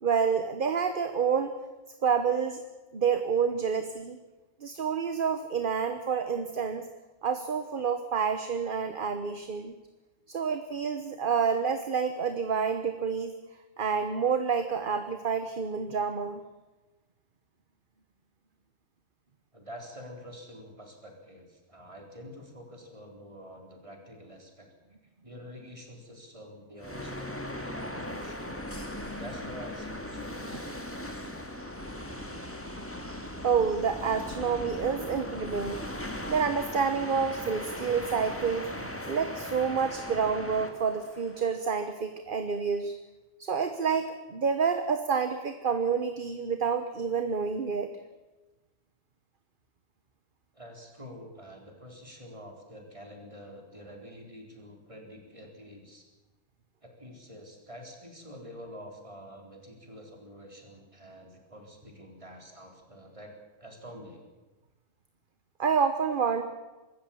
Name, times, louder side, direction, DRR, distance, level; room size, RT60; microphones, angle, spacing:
voice 1, 0.0-1.5 2.0-2.6 2.9-4.2 4.6-6.9 7.2-9.7 10.3-13.3 13.8-16.4 30.5-30.6 33.4-35.8 36.3-43.0 43.4-47.9 65.6-66.4, right 6 dB, 50° right, 8 dB, 1.3 m, -28 dB
voice 2, 19.5-24.7 25.2-28.6 29.1-30.7 50.5-56.1 56.8-63.3 63.6-64.3, equal, 30° right, 2 dB, 4.3 m, -47 dB
sound 1, 26.8-41.9, left 1 dB, 10° left, 2.1 m, -39 dB
24.0 x 14.0 x 8.6 m, 1.2 s
omnidirectional pair, 1.2 m